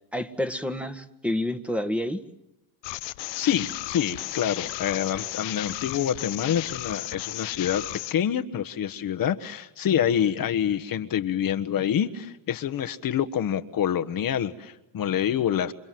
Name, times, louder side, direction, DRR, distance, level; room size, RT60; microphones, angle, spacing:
voice 1, 0.1-2.2, left 1 dB, 5° right, 6 dB, 1.7 m, -29 dB
sound 1, 2.8-8.1, left 17 dB, 75° left, 1.0 m, -34 dB
voice 2, 3.3-7.8 8.1-15.7, left 9 dB, 50° left, 7 dB, 1.4 m, -26 dB
29.0 x 25.5 x 7.7 m, 0.90 s
supercardioid pair, 90°, 42 cm